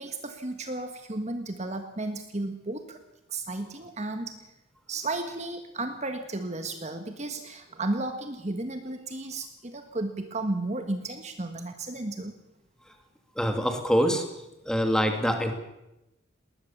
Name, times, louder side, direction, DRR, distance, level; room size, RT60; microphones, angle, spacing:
voice 1, 0.0-3.0 3.3-4.4 4.9-12.3, right 2 dB, 35° right, 7 dB, 1.4 m, -33 dB
voice 2, 13.4-14.2 14.7-15.5, equal, 5° left, 5 dB, 2.4 m, -24 dB
20.0 x 19.5 x 7.3 m, 0.92 s
head